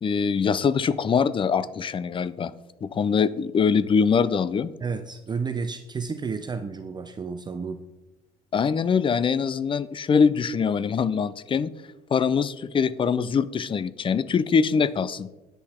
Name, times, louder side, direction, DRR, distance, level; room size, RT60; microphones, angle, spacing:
voice 1, 0.0-2.5 2.8-4.7 8.5-11.7 12.1-15.3, left 6 dB, 30° left, 17 dB, 0.5 m, -23 dB
voice 2, 4.8-7.8, right 5 dB, 25° right, 8 dB, 0.6 m, -31 dB
10.5 x 8.0 x 4.4 m, 1.0 s
cardioid pair, 110°, 17 cm